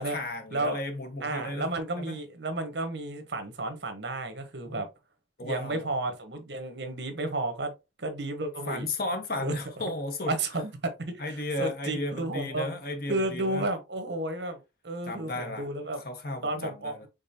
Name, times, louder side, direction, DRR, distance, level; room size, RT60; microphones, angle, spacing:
voice 1, 0.0-1.7 2.0-2.2 4.6-4.8 5.4-5.9 8.7-10.3 11.2-13.7 15.1-15.7 16.0-17.0, left 2 dB, 55° left, 1.1 m, -34 dB
voice 2, 1.2-4.9 5.4-7.7 8.0-8.9 9.4-9.5 10.3-10.9 11.3-12.7 13.1-16.0 16.4-17.1, right 2 dB, 65° right, 1.1 m, -32 dB
5.2 x 3.7 x 2.7 m
head